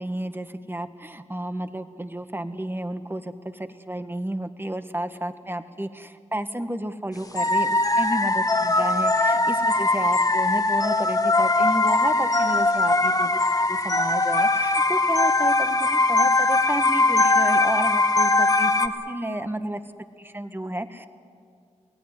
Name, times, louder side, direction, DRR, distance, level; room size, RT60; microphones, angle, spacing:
voice 1, 0.0-13.4 13.7-19.8 20.2-21.1, right 1 dB, 15° right, 9 dB, 1.6 m, -31 dB
sound 1, 7.4-18.9, left 2 dB, 30° left, 1.6 m, -21 dB
24.0 x 17.0 x 9.7 m, 2.2 s
cardioid pair, 45°, 12 cm